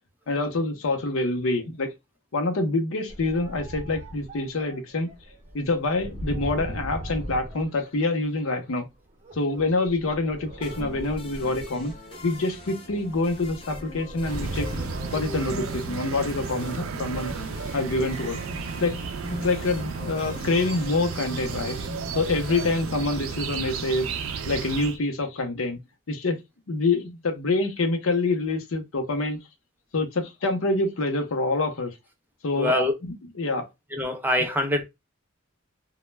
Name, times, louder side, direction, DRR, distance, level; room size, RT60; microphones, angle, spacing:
voice 1, 0.3-1.9 2.3-5.1 5.5-8.9 9.3-11.9 12.2-14.7 15.1-17.3 17.7-18.4 18.8-19.0 19.4-21.8 22.1-24.1 24.5-25.8 26.1-26.4 26.7-29.4 29.9-31.9 32.4-33.7, left 2 dB, 90° left, 0.7 m, -26 dB
sound 1, 3.1-8.4 9.2-18.1, equal, 35° right, 0.8 m, -40 dB
sound 2, 10.6-23.7, left 2 dB, 25° left, 0.8 m, -41 dB
sound 3, 14.2-25.0, right 5 dB, 85° right, 0.4 m, -33 dB
voice 2, 32.5-32.9 33.9-34.8, left 1 dB, 10° right, 0.5 m, -24 dB
2.2 x 2.1 x 3.1 m
head